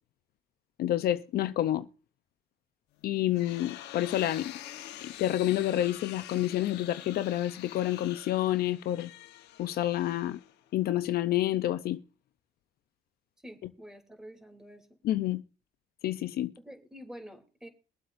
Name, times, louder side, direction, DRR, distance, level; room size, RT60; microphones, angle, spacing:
voice 1, 0.8-1.9 3.0-4.5 5.0-9.1 9.6-10.4 10.7-12.0 15.0-15.4 16.0-16.5, left 13 dB, 65° left, 0.6 m, -29 dB
sound 1, 3.0-10.9, left 12 dB, 80° left, 1.1 m, -46 dB
voice 2, 13.4-14.9 16.6-17.7, equal, 5° right, 2.9 m, -47 dB
22.5 x 7.9 x 2.6 m
cardioid pair, 110°, 17 cm